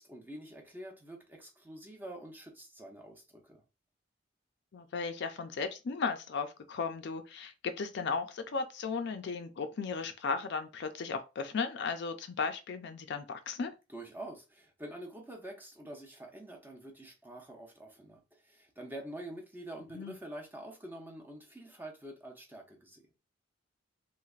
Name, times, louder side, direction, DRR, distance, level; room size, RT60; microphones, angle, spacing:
voice 1, 0.0-3.6 13.9-23.0, right 1 dB, 10° right, 0.6 m, -46 dB
voice 2, 4.7-13.7 19.9-20.2, left 5 dB, 60° left, 0.4 m, -36 dB
3.2 x 2.5 x 2.4 m
head